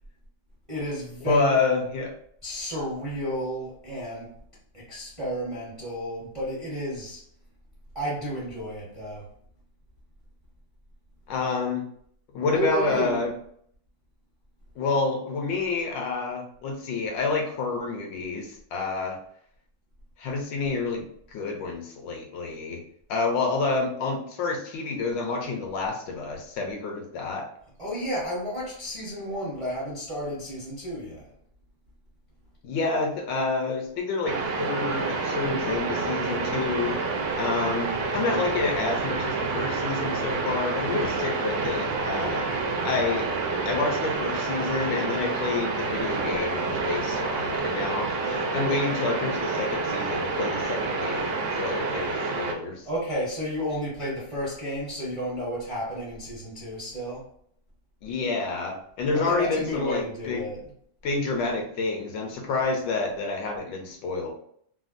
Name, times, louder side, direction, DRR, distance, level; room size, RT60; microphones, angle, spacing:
voice 1, 0.7-1.6 2.4-4.3 4.7-7.2 7.9-9.3 12.5-13.2 27.8-31.3 52.8-57.2 59.1-60.7, equal, 30° right, -7 dB, 0.6 m, -32 dB
voice 2, 1.3-2.1 11.3-11.8 12.3-13.3 14.8-19.2 20.2-22.8 23.1-27.5 32.6-37.0 37.3-43.3 43.6-52.9 58.0-60.4 61.0-64.3, left 3 dB, 75° left, 2 dB, 1.2 m, -28 dB
sound 1, 34.3-52.5, right 3 dB, 70° right, 1.1 m, -28 dB
3.4 x 2.2 x 2.5 m, 0.64 s
omnidirectional pair, 2.2 m